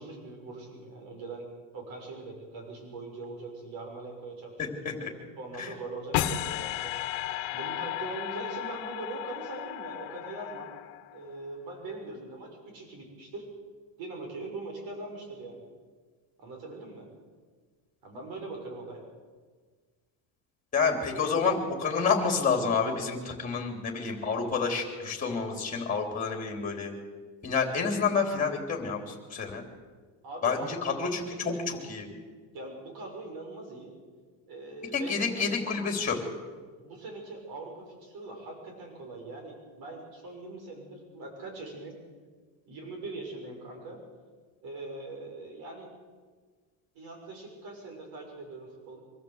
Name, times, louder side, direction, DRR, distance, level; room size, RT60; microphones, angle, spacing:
voice 1, 0.0-1.4 1.7-4.5 5.4-6.9 7.5-10.7 11.1-13.5 14.0-15.6 16.4-17.1 18.0-19.0 30.2-31.6 32.5-33.9 34.5-35.5 36.8-41.9 42.7-44.0 44.6-45.9 46.9-49.0, right 2 dB, 45° right, 2 dB, 6.7 m, -41 dB
sound 1, 6.1-11.3, left 13 dB, 65° left, 1.6 m, -34 dB
voice 2, 20.7-26.9 27.4-29.6 30.4-32.1 34.9-36.2, left 5 dB, 15° left, 3 dB, 3.2 m, -29 dB
24.5 x 14.0 x 8.0 m, 1.5 s
cardioid pair, 165°, 49 cm